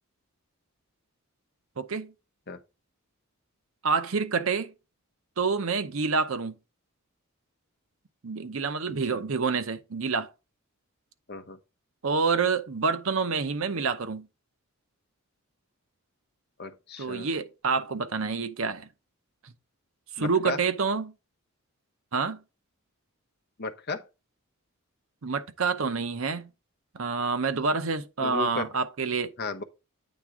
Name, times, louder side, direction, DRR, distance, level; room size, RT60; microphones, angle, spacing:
voice 1, 1.8-2.1 3.8-4.7 5.4-6.6 8.2-10.3 12.0-14.3 17.0-18.9 19.4-19.5 20.2-21.1 22.1-22.4 25.2-26.5 26.9-29.3, right 4 dB, 65° right, 0.7 m, -28 dB
voice 2, 16.6-17.3 20.2-20.6 23.6-24.0 28.2-28.7 29.4-29.6, left 4 dB, 45° left, 0.7 m, -34 dB
8.9 x 3.5 x 4.8 m
head